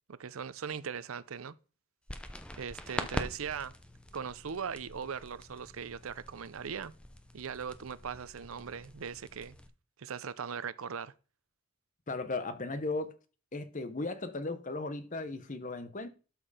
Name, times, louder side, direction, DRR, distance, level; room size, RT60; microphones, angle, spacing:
voice 1, 0.1-1.5 2.6-3.8 4.1-6.9 7.3-9.6 10.0-11.1, right 6 dB, 75° right, 0.5 m, -39 dB
sound 1, 2.1-9.7, left 1 dB, 5° left, 0.6 m, -44 dB
voice 2, 12.1-13.2 13.5-16.1, left 3 dB, 35° left, 0.9 m, -36 dB
12.5 x 4.4 x 4.9 m
head